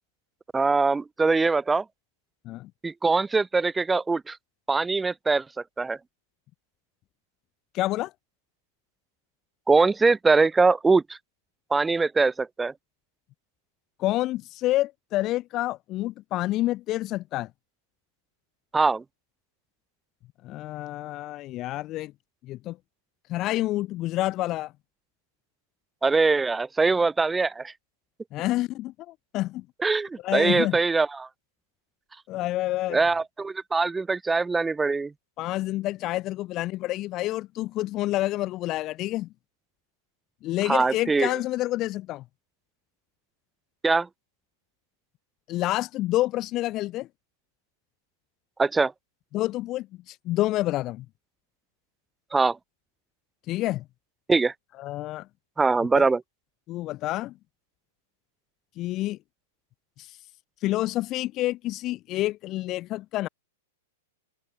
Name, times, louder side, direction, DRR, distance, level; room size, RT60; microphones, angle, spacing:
voice 1, 0.5-1.8 2.8-4.4 4.7-5.4 5.8-6.0 9.7-11.2 11.7-12.7 18.7-19.0 26.0-27.7 29.8-31.3 32.9-35.1 40.6-41.3 43.8-44.1 48.6-48.9 52.3-52.6 54.3-54.5 55.6-56.2, right 4 dB, 10° right, 1.4 m, -22 dB
voice 2, 7.7-8.1 14.0-17.5 20.4-22.1 22.4-22.8 23.3-24.7 28.3-29.6 30.2-30.8 32.3-33.0 35.4-39.3 40.4-42.2 45.5-47.1 49.3-51.1 53.5-53.8 54.8-55.3 56.0-56.1 56.7-57.3 58.8-59.2 60.0-60.2 60.6-63.3, left 16 dB, 35° left, 0.6 m, -28 dB
hypercardioid pair, 125°, 0 cm